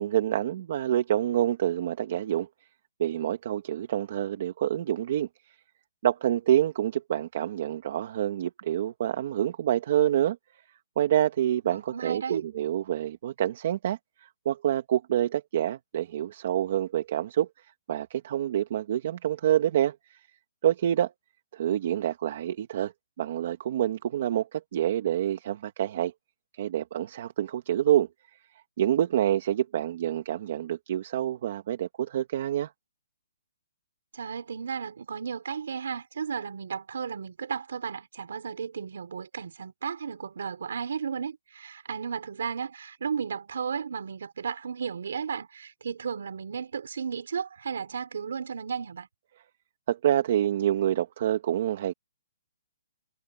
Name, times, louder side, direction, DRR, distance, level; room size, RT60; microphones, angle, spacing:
voice 1, 0.0-2.5 3.0-5.5 6.0-10.4 11.0-17.5 17.9-20.2 20.6-21.1 21.5-22.9 23.2-26.1 26.5-28.1 28.8-32.7 49.9-51.9, right 11 dB, 35° right, 1.6 m, -27 dB
voice 2, 11.7-12.4 34.1-49.1, right 6 dB, 60° right, 5.1 m, -34 dB
hypercardioid pair, 175°, 0 cm